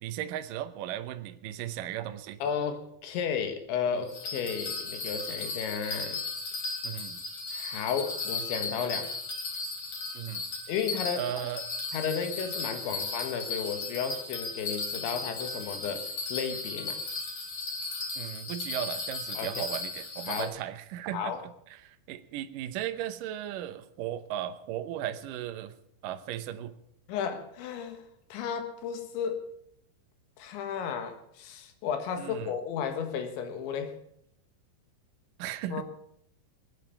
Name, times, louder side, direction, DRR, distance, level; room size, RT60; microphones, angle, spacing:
voice 1, 0.0-2.4 6.8-7.2 10.1-10.4 11.1-11.6 18.2-25.8 26.0-26.8 32.2-32.5 35.4-35.8, right 12 dB, 85° right, 9 dB, 1.9 m, -36 dB
voice 2, 2.4-6.2 7.5-9.1 10.7-11.2 11.9-17.0 19.4-19.6 20.3-20.5 21.1-21.4 27.1-28.0 28.3-29.4 30.4-34.0 35.7-35.8, left 7 dB, 85° left, 7 dB, 3.8 m, -33 dB
Bell, 4.1-20.4, left 3 dB, 35° left, 4.2 m, -36 dB
21.5 x 9.1 x 6.9 m, 0.73 s
omnidirectional pair, 5.2 m